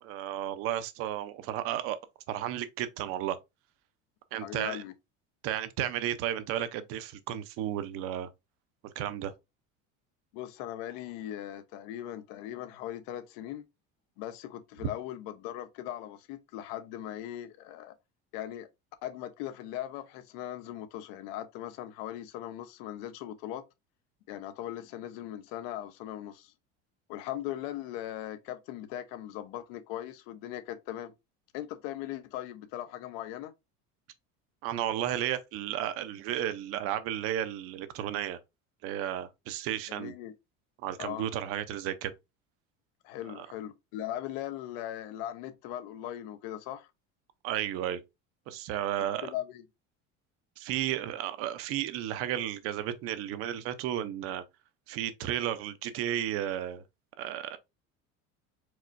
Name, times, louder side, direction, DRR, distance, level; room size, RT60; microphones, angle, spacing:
voice 1, 0.0-2.0 2.3-3.4 4.3-4.8 5.4-8.3 9.0-9.3 34.6-38.4 38.8-40.1 40.8-42.1 43.3-43.5 47.4-48.0 48.5-49.3 50.6-54.4 54.9-56.8 57.2-57.6, right 11 dB, 50° right, 0.7 m, -33 dB
voice 2, 4.4-4.9 10.3-13.7 14.2-17.9 18.3-18.7 19.0-23.6 24.3-26.5 27.1-31.1 31.5-33.5 39.9-40.3 41.0-41.3 43.0-46.9 49.2-49.6, left 12 dB, 85° left, 0.9 m, -39 dB
4.8 x 4.2 x 2.5 m
cardioid pair, 180°, 29 cm